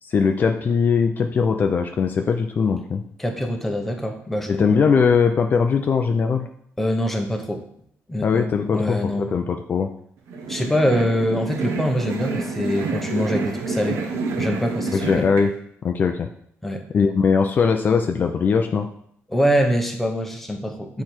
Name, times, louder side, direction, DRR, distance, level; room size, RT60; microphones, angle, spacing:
voice 1, 0.0-3.0 4.5-6.5 8.2-9.9 14.9-15.5 15.8-16.3 16.9-18.9, left 5 dB, 35° left, 5 dB, 0.5 m, -20 dB
voice 2, 3.2-4.6 6.8-7.6 8.1-9.3 10.5-14.0 14.4-15.3 16.6-16.8 19.3-21.0, equal, 5° left, 3 dB, 0.9 m, -24 dB
sound 1, 10.3-15.4, right 4 dB, 85° right, 1.2 m, -28 dB
8.6 x 4.6 x 4.5 m, 0.66 s
cardioid pair, 150°, 5 cm